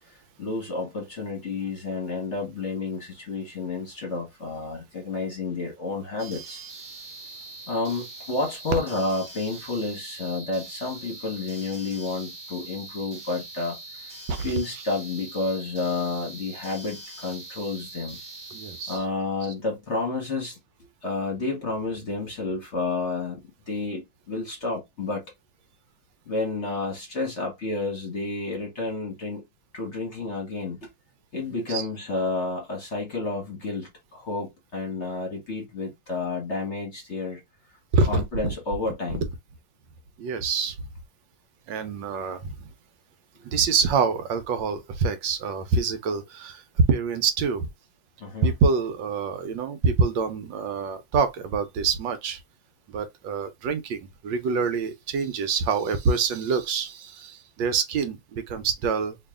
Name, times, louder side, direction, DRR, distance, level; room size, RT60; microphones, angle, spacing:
voice 1, 0.1-6.6 7.7-14.1 14.4-18.2 18.9-20.6 21.0-25.2 26.3-29.4 29.7-30.8 31.3-37.4 38.1-39.2 48.2-48.5, left 3 dB, 45° left, 1.1 m, -30 dB
sound 1, 6.2-19.0, right 2 dB, 35° right, 1.1 m, -42 dB
voice 2, 18.5-19.0 31.7-31.9 37.9-38.2 40.2-40.7 41.7-42.5 43.4-46.6 46.9-47.7 48.4-52.4 52.9-59.2, right 5 dB, 75° right, 1.3 m, -26 dB
3.0 x 2.7 x 3.5 m
omnidirectional pair, 2.2 m